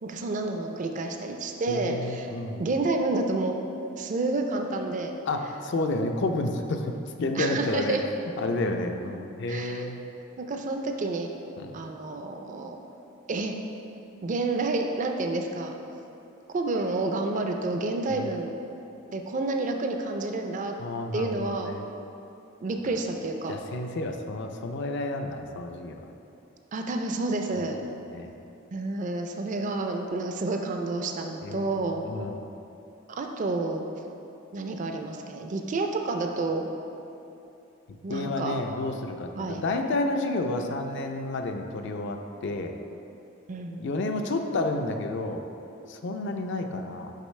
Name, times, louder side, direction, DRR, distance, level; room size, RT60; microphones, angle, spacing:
voice 1, 0.0-2.3 2.6-3.6 4.0-5.2 7.3-8.0 9.5-9.9 10.4-11.3 11.7-12.8 13.3-13.5 14.2-15.7 16.5-18.6 19.1-20.7 21.1-21.7 22.6-23.5 26.7-27.8 28.7-32.0 33.1-33.9 34.5-36.7 38.0-38.6 39.4-39.7 43.5-43.9, right 2 dB, 40° right, 4 dB, 0.4 m, -29 dB
voice 2, 1.7-2.6 5.3-6.9 7.2-8.0 8.4-10.0 11.6-11.7 18.1-18.3 20.8-21.8 23.5-26.0 28.1-28.3 31.4-31.7 32.0-32.5 38.1-42.7 43.8-45.4 45.9-47.1, left 2 dB, 60° left, 5 dB, 0.4 m, -30 dB
6.5 x 5.2 x 3.2 m, 2.8 s
head